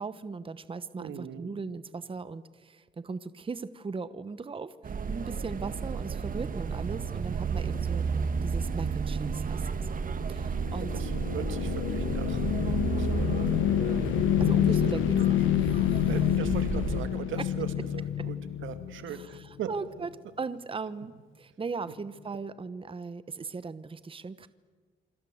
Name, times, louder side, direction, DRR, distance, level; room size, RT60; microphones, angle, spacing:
voice 1, 0.0-8.0 8.4-9.7 10.3-10.9 14.4-15.2 15.6-16.1 19.1-20.1 20.4-24.5, right 4 dB, 25° right, 14 dB, 1.1 m, -38 dB
voice 2, 1.0-1.5 10.8-14.1 14.7-14.8 16.1-19.7, right 9 dB, 80° right, 9 dB, 2.5 m, -40 dB
sound 1, 4.8-17.1, right 5 dB, 45° right, 1.9 m, -32 dB
sound 2, 10.1-19.4, left 12 dB, 90° left, 0.9 m, -28 dB
27.5 x 25.5 x 7.9 m, 1.5 s
cardioid pair, 90°, 20 cm